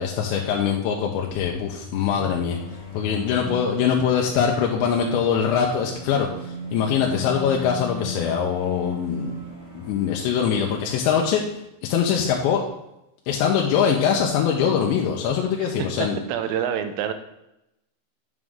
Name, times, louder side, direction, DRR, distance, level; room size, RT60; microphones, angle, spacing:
voice 1, 0.0-2.6 2.9-9.5 9.7-11.4 11.8-12.6 13.3-16.2, left 7 dB, 80° left, 0 dB, 2.7 m, -23 dB
sound 1, 1.2-10.7, left 3 dB, 15° right, 2.6 m, -36 dB
voice 2, 16.3-17.1, right 9 dB, 90° right, 9 dB, 3.4 m, -27 dB
9.5 x 6.2 x 3.7 m, 0.86 s
omnidirectional pair, 5.8 m